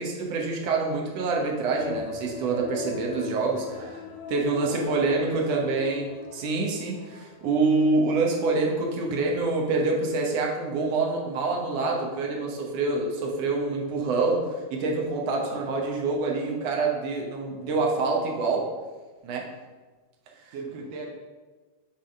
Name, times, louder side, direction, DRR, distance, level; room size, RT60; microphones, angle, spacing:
voice 1, 0.0-4.0 4.3-18.7 19.2-19.5 20.4-20.5, right 3 dB, 70° right, 0 dB, 1.6 m, -26 dB
sound 1, 1.7-8.0 8.3-8.4, left 5 dB, 90° left, 2.5 m, -39 dB
voice 2, 3.7-4.2 4.6-5.7 15.4-15.7 20.5-21.1, right 2 dB, 90° right, 1 dB, 1.4 m, -40 dB
8.0 x 3.5 x 5.2 m, 1.3 s
omnidirectional pair, 4.1 m